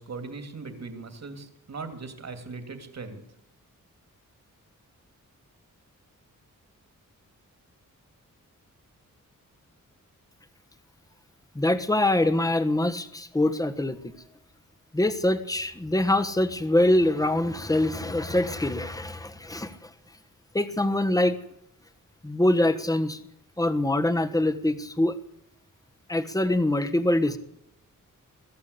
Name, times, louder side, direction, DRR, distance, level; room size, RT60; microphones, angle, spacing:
voice 1, 0.0-3.2, right 4 dB, 55° right, 8 dB, 2.9 m, -39 dB
voice 2, 11.5-14.1 14.9-19.9 20.5-21.4 22.2-23.2 23.6-25.2 26.1-27.4, left 1 dB, 10° left, 8 dB, 1.4 m, -24 dB
22.5 x 14.0 x 8.5 m, 0.77 s
wide cardioid pair, 140°, 33 cm